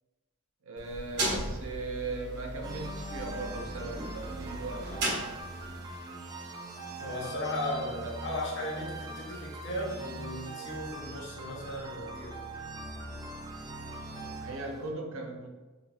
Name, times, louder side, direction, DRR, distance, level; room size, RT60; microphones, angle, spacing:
voice 1, 0.6-5.2 7.7-8.2 14.4-15.5, right 3 dB, 70° right, 1 dB, 0.6 m, -38 dB
sound 1, 0.8-5.8, right 1 dB, 50° right, 1.0 m, -36 dB
sound 2, 2.6-14.9, right 2 dB, 20° right, 0.3 m, -41 dB
voice 2, 7.0-7.9 8.2-12.4, left 1 dB, 55° left, -3 dB, 0.8 m, -36 dB
4.9 x 2.4 x 2.3 m, 1.2 s
head